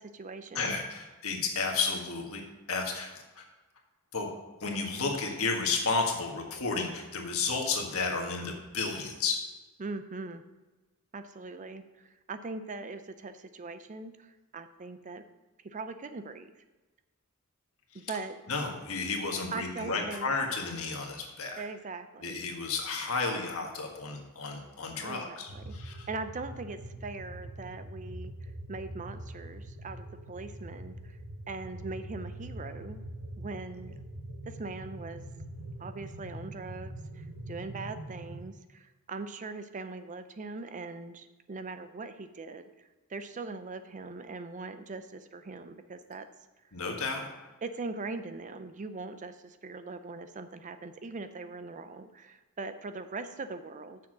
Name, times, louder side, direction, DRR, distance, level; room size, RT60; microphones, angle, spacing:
voice 1, 0.0-0.8 9.8-10.4 11.1-15.2 15.6-16.5 17.9-18.4 19.5-20.3 21.6-22.4 25.0-31.2 31.5-33.0 33.4-34.0 34.5-35.2 35.8-42.7 43.1-46.3 47.6-54.0, right 3 dB, 35° right, 10 dB, 0.5 m, -41 dB
voice 2, 0.5-2.4 2.7-3.1 3.4-3.5 4.1-4.3 4.6-9.4 18.5-21.6 22.2-26.1 46.7-47.3, left 4 dB, 70° left, 2 dB, 1.5 m, -32 dB
sound 1, 25.5-38.4, right 1 dB, 85° right, 1.2 m, -43 dB
7.2 x 6.2 x 6.1 m, 1.2 s
head